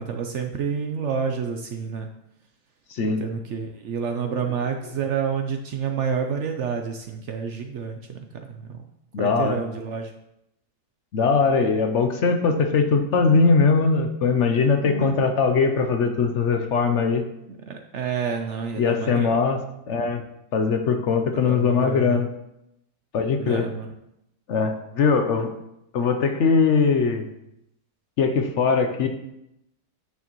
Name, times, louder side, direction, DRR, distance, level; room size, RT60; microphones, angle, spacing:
voice 1, 0.0-2.1 3.0-8.8 9.2-10.1 14.8-15.1 17.7-19.4 21.5-22.2 23.4-23.9, right 6 dB, 70° right, 4 dB, 0.6 m, -29 dB
voice 2, 2.9-3.2 9.1-9.6 11.1-17.2 18.8-19.6 19.9-20.2 20.5-22.3 23.1-23.7 24.5-25.5 25.9-27.3 28.2-29.1, left 5 dB, 60° left, 5 dB, 0.7 m, -21 dB
9.2 x 6.3 x 3.0 m, 0.83 s
omnidirectional pair, 1.9 m